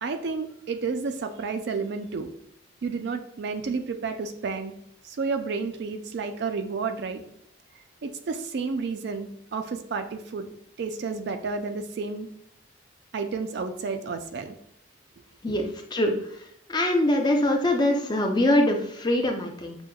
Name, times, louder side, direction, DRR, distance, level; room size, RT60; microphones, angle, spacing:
voice 1, 0.0-2.3 2.8-4.7 5.0-7.2 8.0-10.5 10.8-12.3 13.1-14.6, right 4 dB, 55° right, 7 dB, 0.4 m, -31 dB
voice 2, 15.4-16.1 16.7-19.8, left 1 dB, 20° left, 2 dB, 0.5 m, -23 dB
6.1 x 2.2 x 2.2 m, 0.72 s
head